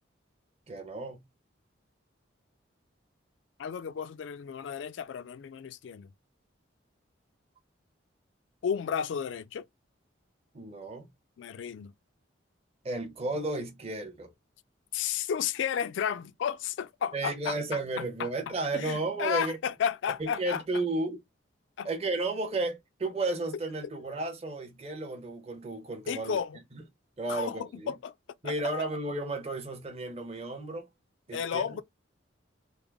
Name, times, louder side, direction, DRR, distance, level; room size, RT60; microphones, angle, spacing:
voice 1, 0.7-1.3 10.5-11.1 12.8-14.3 17.1-19.6 20.2-21.2 21.8-26.4 26.7-26.8 27.2-27.9 28.4-30.9 31.3-31.8, right 2 dB, 35° right, 0.8 m, -33 dB
voice 2, 3.6-6.1 8.6-9.7 11.4-11.9 14.9-20.6 21.8-21.9 26.1-26.6 27.3-28.1 28.4-28.5 31.3-31.8, left 8 dB, 75° left, 0.3 m, -33 dB
3.5 x 2.0 x 3.4 m
head